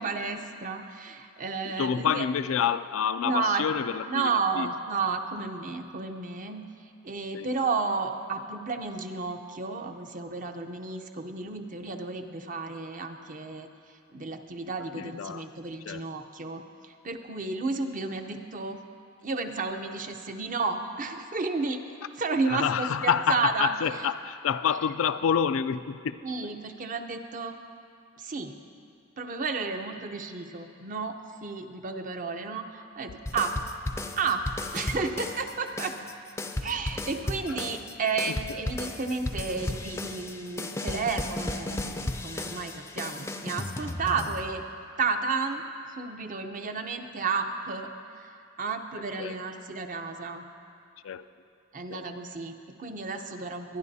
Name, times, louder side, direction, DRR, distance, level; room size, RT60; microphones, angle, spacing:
voice 1, 0.0-2.3 3.2-3.7 4.0-6.7 7.0-18.8 19.2-21.8 22.2-23.7 26.2-27.6 28.2-28.5 29.2-33.5 34.2-34.4 34.7-35.9 36.6-44.6 45.0-45.6 45.9-47.9 48.2-48.3 48.6-50.4 51.7-53.8, right 4 dB, 40° right, 6 dB, 0.7 m, -32 dB
voice 2, 1.8-4.3 4.6-4.7 7.3-7.5 15.0-15.4 15.9-16.1 22.5-26.2 49.2-49.3 51.0-51.2 51.9-52.1, left 7 dB, 90° left, 12 dB, 0.4 m, -28 dB
sound 1, 33.3-35.5 35.8-44.8, left 2 dB, 15° left, 0.4 m, -35 dB
22.0 x 10.5 x 2.7 m, 2.4 s
head